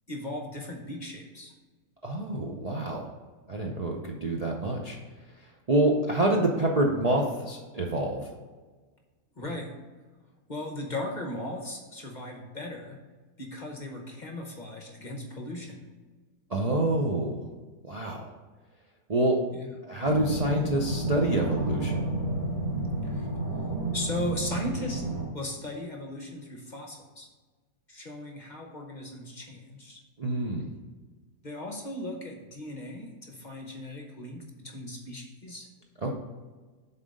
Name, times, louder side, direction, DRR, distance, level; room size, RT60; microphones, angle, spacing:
voice 1, 0.1-1.5 9.4-9.8 10.5-13.0 13.4-15.9 19.6-19.7 23.0-23.3 23.9-25.1 25.3-27.3 27.9-30.0 31.4-35.7, left 1 dB, 40° left, 2 dB, 0.7 m, -37 dB
voice 2, 2.0-3.0 3.5-5.0 5.7-8.3 16.5-17.5 17.8-18.3 19.1-19.4 19.9-22.0 30.2-30.7 36.0-36.1, right 1 dB, 85° right, -1 dB, 0.3 m, -27 dB
sound 1, 20.0-25.2, right 2 dB, 30° right, 2.3 m, -31 dB
7.3 x 4.1 x 5.3 m, 1.3 s
omnidirectional pair, 1.7 m